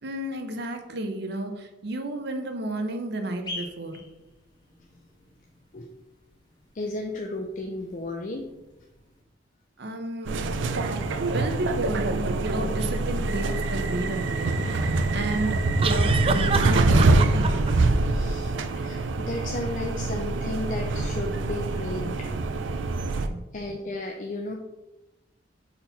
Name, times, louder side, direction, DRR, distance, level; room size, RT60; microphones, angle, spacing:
voice 1, 0.0-4.0 9.8-10.4 10.9-11.0 11.3-14.9 15.1-17.6 22.8-22.9 23.3-23.4, right 1 dB, 60° right, 5 dB, 0.8 m, -32 dB
sound 1, 3.4-9.2, left 2 dB, 25° left, 1.3 m, -46 dB
voice 2, 6.7-8.4 18.1-22.3 23.2-23.3 23.5-24.5, left 2 dB, 45° left, 2 dB, 0.5 m, -34 dB
sound 2, 10.3-23.3, right 2 dB, 85° right, 0.5 m, -25 dB
sound 3, 12.8-13.0 15.8-17.7, right 5 dB, 30° right, 0.4 m, -28 dB
4.3 x 4.2 x 5.6 m, 0.99 s
head